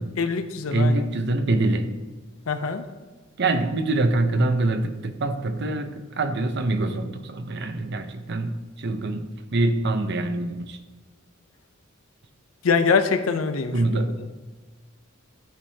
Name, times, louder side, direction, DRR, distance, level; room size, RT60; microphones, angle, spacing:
voice 1, 0.2-1.1 2.5-2.8 12.6-14.0, left 5 dB, 85° left, 9 dB, 0.6 m, -24 dB
voice 2, 0.7-1.9 3.4-10.8 13.7-14.1, right 2 dB, 55° right, 9 dB, 0.7 m, -24 dB
13.5 x 5.2 x 2.8 m, 1.3 s
head